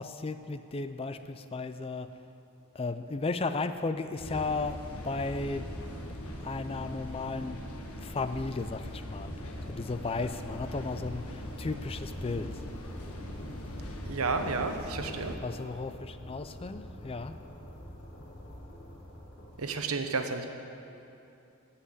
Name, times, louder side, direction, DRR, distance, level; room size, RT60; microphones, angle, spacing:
voice 1, 0.0-2.1 2.7-5.7 6.4-7.7 8.0-12.6 15.4-17.3, left 3 dB, 25° left, 10 dB, 0.4 m, -35 dB
sound 1, 4.2-15.4, left 1 dB, 80° left, 1.3 m, -41 dB
sound 2, 10.4-19.6, equal, 50° left, 1.5 m, -47 dB
voice 2, 14.0-15.3 19.6-20.5, right 4 dB, 75° right, 6 dB, 1.0 m, -31 dB
14.5 x 5.7 x 8.4 m, 2.8 s
head